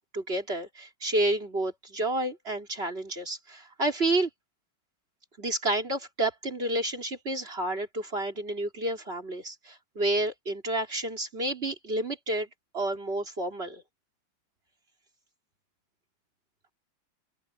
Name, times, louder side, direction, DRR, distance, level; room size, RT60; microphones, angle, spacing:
voice 1, 0.0-4.3 5.4-12.5 12.7-13.8, right 1 dB, 30° right, 3.6 m, -30 dB
open air
omnidirectional pair, 2.2 m